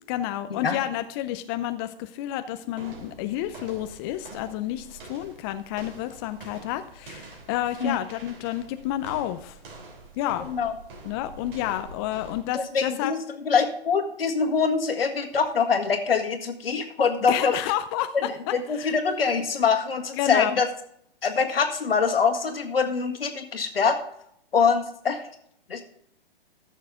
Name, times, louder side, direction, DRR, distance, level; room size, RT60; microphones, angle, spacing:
voice 1, 0.0-9.6 10.2-10.5 11.0-13.1 17.3-18.1 18.7-18.9 20.2-20.5, left 13 dB, 25° left, 9 dB, 0.4 m, -30 dB
sound 1, 2.7-12.6, right 2 dB, 60° right, 3.2 m, -45 dB
voice 2, 10.4-10.7 12.5-13.2 13.4-17.6 18.1-20.7 21.2-24.0 24.5-25.2 25.7-25.8, left 5 dB, 75° left, 4 dB, 1.8 m, -24 dB
14.5 x 6.5 x 3.7 m, 0.72 s
figure-of-eight pair, 120°, 30 cm